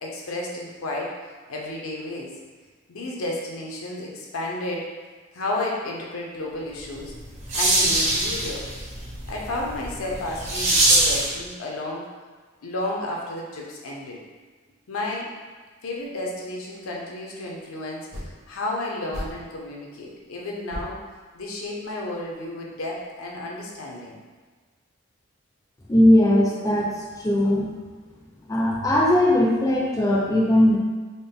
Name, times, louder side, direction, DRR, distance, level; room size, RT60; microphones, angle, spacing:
voice 1, 0.0-1.2 1.5-2.3 2.9-4.9 5.3-7.1 7.5-8.7 9.3-12.1 12.6-14.2 14.9-15.3 15.8-21.0 21.3-24.2, left 2 dB, 85° left, -2 dB, 0.7 m, -32 dB
sound 1, 6.9-11.4, right 1 dB, 30° right, 0.6 m, -23 dB
sound 2, 16.0-16.1 18.1-18.5 19.1-19.7 20.2-20.3 20.7-21.9, left 1 dB, 65° right, 1.2 m, -37 dB
voice 2, 25.9-27.7 28.5-30.8, left 1 dB, 15° left, -4 dB, 0.4 m, -19 dB
3.9 x 2.1 x 3.5 m, 1.4 s
head